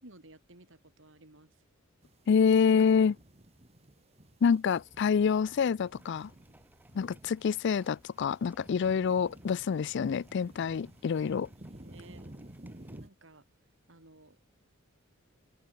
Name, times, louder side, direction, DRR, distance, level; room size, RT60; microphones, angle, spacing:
voice 1, 0.0-1.6 11.8-12.4 13.0-13.4 13.9-14.5, right 2 dB, 65° right, 3.8 m, -55 dB
sound 1, 2.0-13.1, right 1 dB, 30° right, 1.9 m, -53 dB
voice 2, 2.3-3.2 4.4-6.3 6.9-11.5, left 6 dB, 60° left, 0.4 m, -27 dB
sound 2, 4.6-13.0, right 1 dB, 10° right, 2.9 m, -63 dB
open air
head